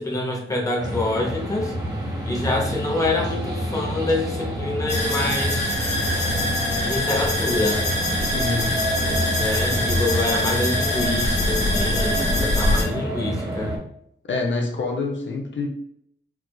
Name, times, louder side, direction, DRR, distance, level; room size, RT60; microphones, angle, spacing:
voice 1, 0.0-1.7 2.2-5.8 6.8-7.9 9.4-13.7, left 2 dB, 15° left, -1 dB, 0.7 m, -26 dB
sound 1, 0.8-13.8, equal, 20° right, 0.8 m, -27 dB
sound 2, 4.9-12.8, left 1 dB, 35° left, 1.2 m, -25 dB
voice 2, 8.2-8.8 9.7-9.9 14.3-15.7, left 3 dB, 65° left, 1 dB, 0.6 m, -26 dB
4.5 x 2.4 x 2.2 m, 0.70 s
wide cardioid pair, 130°, 20 cm